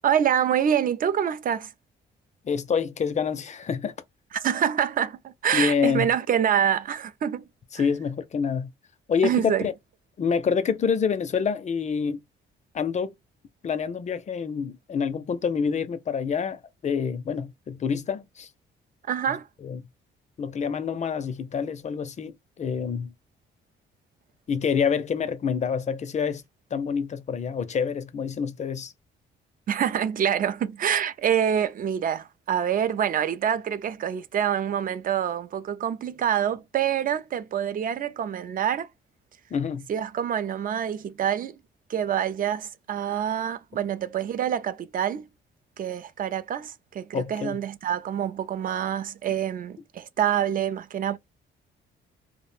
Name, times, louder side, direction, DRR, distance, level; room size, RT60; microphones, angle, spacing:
voice 1, 0.0-1.7 4.3-7.4 7.8-7.9 9.2-9.7 19.1-19.5 29.7-38.9 39.9-41.6 41.9-45.3 45.8-51.2, right 9 dB, 45° right, 0.4 m, -26 dB
voice 2, 2.4-3.9 5.5-6.1 7.7-8.7 9.1-9.7 10.2-12.2 12.7-13.1 13.6-18.5 19.6-19.8 20.4-23.1 24.5-26.4 26.7-28.9 39.5-39.9 47.1-47.6, left 6 dB, 35° left, 0.4 m, -27 dB
2.4 x 2.1 x 3.2 m
cardioid pair, 90°, 20 cm